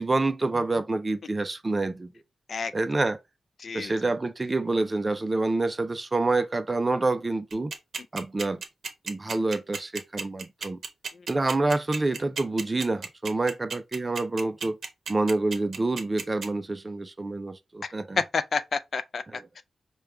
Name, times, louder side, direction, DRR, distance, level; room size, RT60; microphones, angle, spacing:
voice 1, 0.0-2.1 2.7-3.2 3.7-7.7 8.1-8.6 9.0-10.8 11.3-14.8 15.1-18.2 19.3-19.4, right 2 dB, 25° right, 0.4 m, -27 dB
voice 2, 3.6-3.9 18.2-19.2 19.6-19.7, left 5 dB, 55° left, 0.3 m, -29 dB
sound 1, 7.5-16.5, right 5 dB, 60° right, 0.8 m, -33 dB
5.0 x 2.3 x 3.2 m
wide cardioid pair, 140°, 0 cm